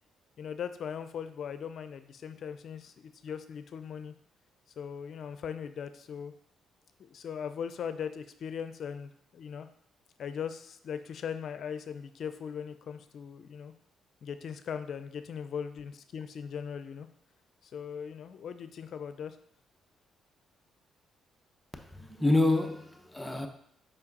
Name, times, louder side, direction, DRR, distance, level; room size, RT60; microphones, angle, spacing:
voice 1, 0.4-4.1 4.8-6.3 7.0-9.7 10.2-13.7 14.2-17.1 17.6-19.4, left 7 dB, 60° left, 0.5 m, -39 dB
voice 2, 21.7-23.5, left 2 dB, 5° left, 0.8 m, -28 dB
5.6 x 5.2 x 4.1 m
cardioid pair, 90°, 0 cm